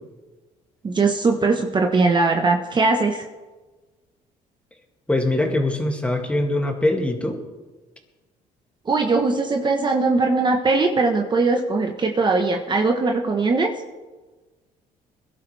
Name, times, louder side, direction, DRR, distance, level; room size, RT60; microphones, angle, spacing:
voice 1, 0.8-3.2 8.9-13.7, right 3 dB, 30° right, 3 dB, 1.2 m, -20 dB
voice 2, 5.1-7.4, left 1 dB, 10° left, 1 dB, 2.4 m, -22 dB
21.5 x 11.5 x 3.4 m, 1.2 s
cardioid pair, 95°, 15 cm